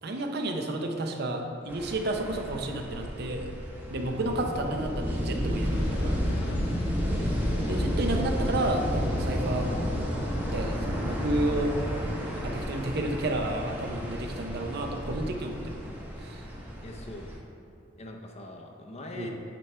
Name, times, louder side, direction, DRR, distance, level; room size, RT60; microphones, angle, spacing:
voice 1, 0.0-3.5 3.9-6.1 7.7-9.7 10.5-11.8 12.3-15.8 16.2-16.5 19.1-19.3, right 1 dB, 60° right, 3 dB, 0.6 m, -31 dB
sound 1, 1.7-17.4, equal, 10° right, 0.8 m, -32 dB
sound 2, 5.6-12.1, left 1 dB, 85° left, 0.5 m, -37 dB
voice 2, 6.3-6.6 16.8-17.3 18.0-19.3, left 2 dB, 35° left, 2 dB, 0.6 m, -43 dB
9.1 x 4.3 x 3.3 m, 2.5 s
head